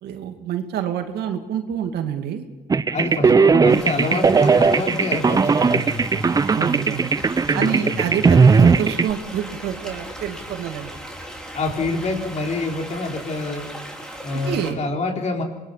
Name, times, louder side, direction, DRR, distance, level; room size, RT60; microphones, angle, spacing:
voice 1, 0.0-2.4 6.5-7.1 7.5-11.0 14.5-14.8, right 9 dB, 75° right, 6 dB, 2.4 m, -27 dB
sound 1, 2.7-9.1, right 5 dB, 20° right, 0.6 m, -17 dB
voice 2, 2.9-6.4 7.5-8.2 11.5-13.7 14.2-15.4, left 2 dB, 45° left, 2 dB, 4.2 m, -27 dB
sound 2, 3.7-14.7, equal, 5° left, 4.2 m, -37 dB
26.0 x 21.5 x 5.8 m, 1.2 s
cardioid pair, 110°, 17 cm